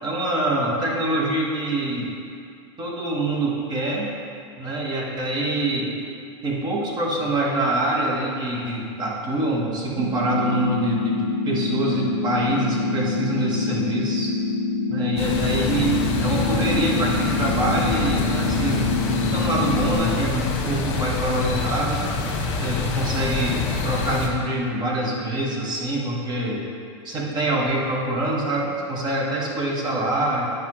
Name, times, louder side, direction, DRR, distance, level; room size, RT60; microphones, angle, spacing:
voice 1, 0.0-2.1 2.8-4.1 4.6-5.9 6.4-14.3 14.9-15.9 16.2-19.0 19.3-22.0 22.6-26.7 27.0-30.5, right 1 dB, 25° right, -2 dB, 1.4 m, -25 dB
sound 1, 10.0-20.0, left 3 dB, 85° right, 1.7 m, -25 dB
sound 2, 15.2-24.3, left 4 dB, 40° left, 1.3 m, -26 dB
9.2 x 5.7 x 3.2 m, 2.4 s
hypercardioid pair, 120°, 16 cm